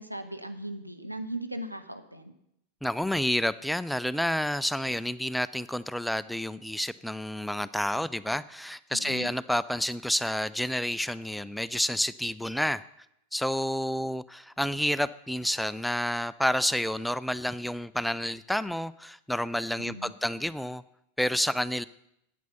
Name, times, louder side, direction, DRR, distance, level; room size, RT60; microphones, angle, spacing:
voice 1, 0.0-2.3 8.9-9.3 19.8-20.1, right 1 dB, 90° right, 7 dB, 1.0 m, -38 dB
voice 2, 2.8-12.8 13.3-20.8 21.2-21.9, equal, ahead, 17 dB, 0.3 m, -29 dB
9.3 x 8.6 x 6.7 m, 0.77 s
figure-of-eight pair, 90°, 0 cm